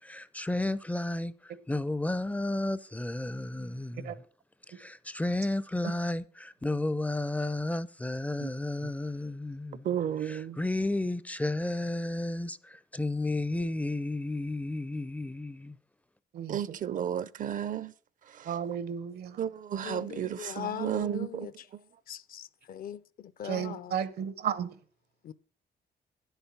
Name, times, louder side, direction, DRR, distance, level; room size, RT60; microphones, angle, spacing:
voice 1, 0.0-4.2 4.7-9.9 10.2-15.8, left 2 dB, 10° left, 0.4 m, -32 dB
voice 2, 9.8-10.6 16.5-17.9 18.3-18.5 19.4-21.5, right 9 dB, 55° right, 0.5 m, -33 dB
voice 3, 16.3-16.8 18.4-19.4 23.4-24.7, right 8 dB, 75° right, 1.0 m, -33 dB
voice 4, 19.8-21.5 22.1-22.4 22.7-23.0 23.4-23.9 25.3-25.4, left 10 dB, 60° left, 0.6 m, -39 dB
10.0 x 8.1 x 6.0 m
cardioid pair, 110°, 16 cm